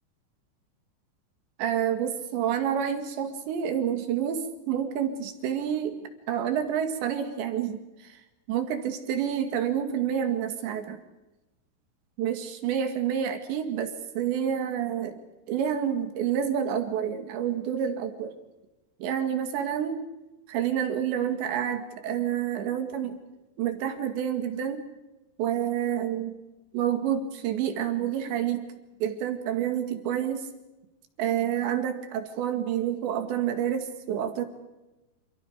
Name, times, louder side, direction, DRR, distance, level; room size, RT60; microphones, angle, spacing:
voice 1, 1.6-8.1 8.5-11.0 12.2-15.2 15.5-18.4 19.0-20.1 20.5-23.2 23.6-24.8 25.4-26.4 26.7-28.7 29.0-30.5 31.2-34.5, right 9 dB, 80° right, 7 dB, 4.4 m, -28 dB
28.5 x 28.0 x 5.1 m, 1.0 s
omnidirectional pair, 5.0 m